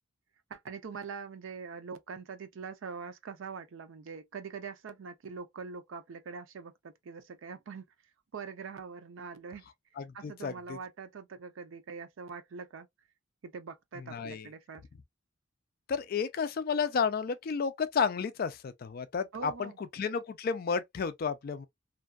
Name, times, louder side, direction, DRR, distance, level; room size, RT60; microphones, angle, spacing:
voice 1, 0.5-7.9 8.3-9.6 10.1-12.9 13.4-14.8 19.3-19.8, right 5 dB, 85° right, 0.5 m, -43 dB
voice 2, 10.0-10.8 14.0-14.5 15.9-21.7, left 6 dB, 50° left, 0.3 m, -32 dB
2.5 x 2.2 x 2.3 m
head